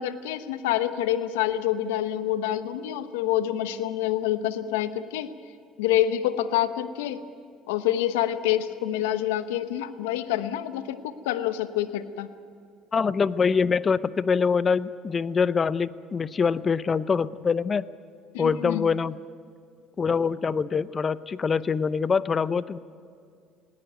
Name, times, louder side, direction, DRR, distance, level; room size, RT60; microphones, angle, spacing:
voice 1, 0.0-5.3 5.8-7.2 7.7-12.3 18.3-18.8, left 12 dB, 85° left, 12 dB, 1.0 m, -27 dB
voice 2, 12.9-17.9 18.4-19.2 20.0-22.8, left 5 dB, 35° left, 17 dB, 0.7 m, -24 dB
20.0 x 17.0 x 9.3 m, 2.3 s
hypercardioid pair, 70°, 0 cm